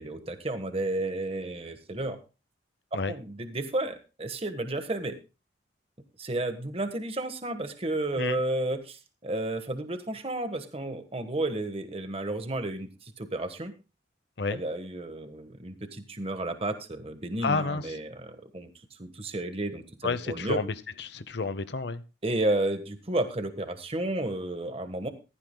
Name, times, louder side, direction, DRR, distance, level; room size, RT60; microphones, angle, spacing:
voice 1, 0.0-2.2 2.9-5.1 6.2-13.7 14.5-18.7 19.0-20.6 22.2-25.1, right 2 dB, 30° right, 8 dB, 1.3 m, -32 dB
voice 2, 17.4-17.8 20.0-20.7 21.0-22.0, left 4 dB, 60° left, 14 dB, 0.8 m, -30 dB
15.5 x 14.5 x 2.2 m, 0.30 s
head